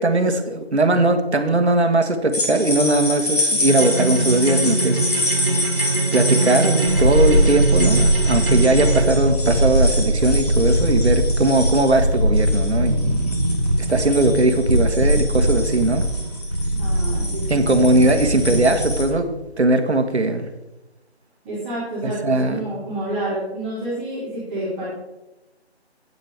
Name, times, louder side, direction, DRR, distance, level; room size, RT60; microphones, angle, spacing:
voice 1, 0.0-5.0 5.4-5.5 6.1-13.2 13.9-16.0 17.5-19.3 19.6-20.5 22.0-22.6, right 2 dB, 80° right, 7 dB, 1.6 m, -19 dB
sound 1, 2.3-19.0, left 1 dB, 35° left, 2.9 m, -28 dB
sound 2, 3.7-9.0, right 2 dB, 55° right, 2.0 m, -22 dB
sound 3, 6.8-19.2 19.5-19.6, equal, 30° right, 0.6 m, -21 dB
voice 2, 16.7-17.7 21.4-24.9, right 1 dB, 5° right, -11 dB, 1.5 m, -29 dB
12.0 x 9.0 x 3.5 m, 1.0 s
figure-of-eight pair, 170°, 33 cm